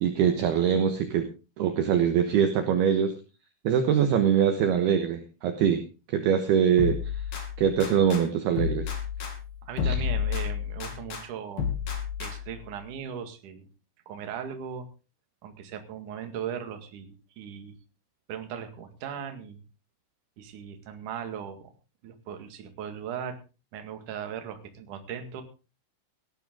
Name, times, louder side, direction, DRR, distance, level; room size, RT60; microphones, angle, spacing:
voice 1, 0.0-1.3 1.6-3.1 3.6-5.8 6.1-7.0 7.6-9.0 9.8-10.0, right 8 dB, 70° right, 6 dB, 2.7 m, -23 dB
sound 1, 6.8-8.2 8.6-11.2 11.6-12.6, left 7 dB, 50° left, 4.7 m, -31 dB
voice 2, 9.6-11.7 12.2-13.7 14.1-14.9 15.4-17.8 18.3-19.6 20.4-21.7 22.0-23.4 23.7-25.4, right 8 dB, 55° right, 6 dB, 2.7 m, -38 dB
18.0 x 12.0 x 3.7 m, 0.32 s
omnidirectional pair, 5.9 m